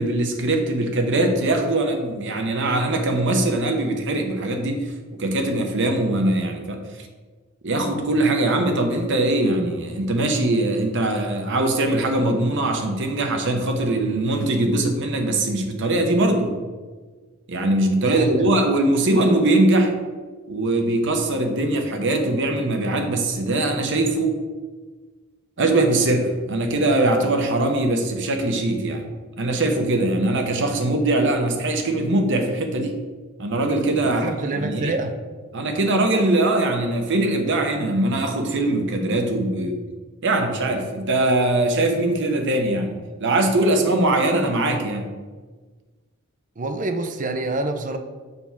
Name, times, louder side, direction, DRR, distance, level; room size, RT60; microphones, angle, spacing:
voice 1, 0.0-7.1 7.6-16.5 17.5-19.9 20.5-24.3 25.6-29.1 29.4-33.0 33.4-34.9 35.5-39.8 40.2-45.0, right 2 dB, 60° right, 4 dB, 0.9 m, -21 dB
voice 2, 18.1-18.5 34.0-35.2 46.6-48.0, right 2 dB, 40° right, 8 dB, 0.6 m, -26 dB
6.8 x 3.6 x 5.9 m, 1.4 s
head